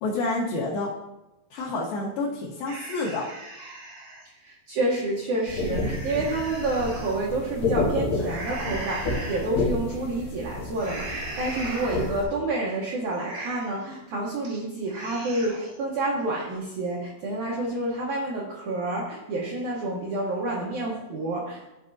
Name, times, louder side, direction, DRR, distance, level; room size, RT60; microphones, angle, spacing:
voice 1, 0.0-0.9 1.5-3.3, left 2 dB, 70° left, -5 dB, 2.4 m, -28 dB
sound 1, 2.6-4.3 4.7-4.8 5.3-7.1 8.2-9.4 9.9-10.3 10.8-12.3 12.7-12.8 13.1-13.8 14.2-14.6 14.8-15.8, right 2 dB, 60° right, 1.6 m, -38 dB
voice 2, 4.4-21.7, right 2 dB, 80° right, -4 dB, 1.7 m, -29 dB
sound 2, 5.5-12.2, left 2 dB, 90° left, 1.5 m, -30 dB
13.0 x 4.7 x 2.7 m, 0.97 s
omnidirectional pair, 5.0 m